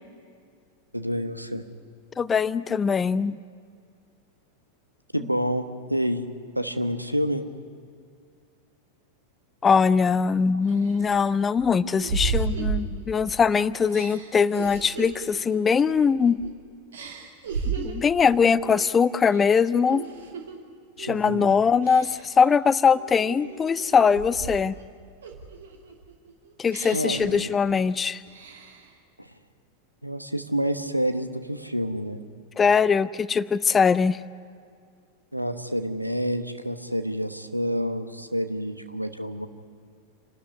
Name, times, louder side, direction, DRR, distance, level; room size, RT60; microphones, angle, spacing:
voice 1, 0.9-1.6 5.1-6.2 6.5-7.4 21.1-21.5 26.9-27.5 29.2-29.3 30.0-32.2 35.3-39.5, equal, 90° right, 9 dB, 1.1 m, -28 dB
voice 2, 2.2-3.4 9.6-16.4 17.7-20.0 21.0-24.8 26.6-28.2 32.6-34.2, left 6 dB, 20° left, 18 dB, 0.5 m, -21 dB
sound 1, 10.0-10.1 10.7-13.4 13.9-16.5 16.9-18.2 18.6-18.9 19.3-20.6 21.0-21.3 21.8-22.4 22.9-24.8 25.2-27.9 28.3-28.9, right 5 dB, 60° right, 2.5 m, -34 dB
28.0 x 12.5 x 9.7 m, 2.2 s
figure-of-eight pair, 90°, 0 cm